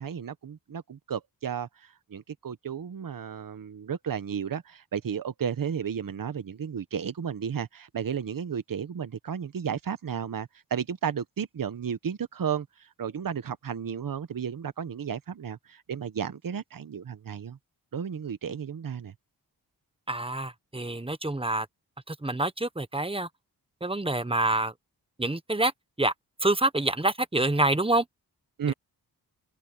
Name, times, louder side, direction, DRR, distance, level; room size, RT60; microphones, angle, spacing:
voice 1, 0.0-17.6 17.9-19.1 28.6-28.7, right 7 dB, 60° right, 1.2 m, -33 dB
voice 2, 20.1-21.7 22.1-23.3 23.8-24.7 25.2-25.7 26.0-26.1 26.4-28.0, right 2 dB, 15° right, 1.2 m, -26 dB
open air
cardioid pair, 65°, 39 cm